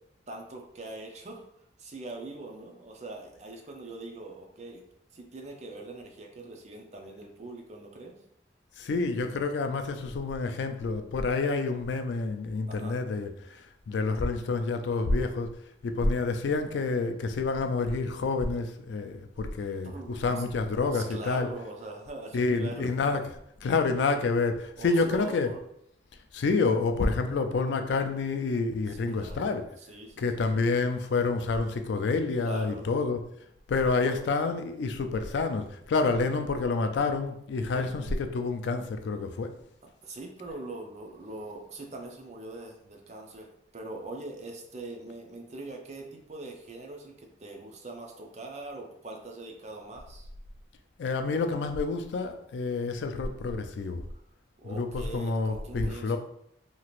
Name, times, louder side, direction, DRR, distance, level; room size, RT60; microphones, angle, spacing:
voice 1, 0.3-1.5 1.8-4.8 5.1-8.1 12.7-13.0 19.8-20.4 20.9-22.9 24.8-25.6 28.9-29.5 29.8-30.6 32.4-32.9 34.0-34.3 37.7-37.9 40.0-50.3 54.1-54.2 54.6-56.2, right 2 dB, 40° right, 2 dB, 0.5 m, -42 dB
voice 2, 8.8-15.5 15.8-21.5 22.3-23.2 23.6-25.5 26.3-29.7 30.2-33.2 33.7-39.5 51.0-54.0 54.6-56.2, left 3 dB, 75° left, 7 dB, 0.3 m, -28 dB
2.8 x 2.4 x 3.0 m, 0.72 s
head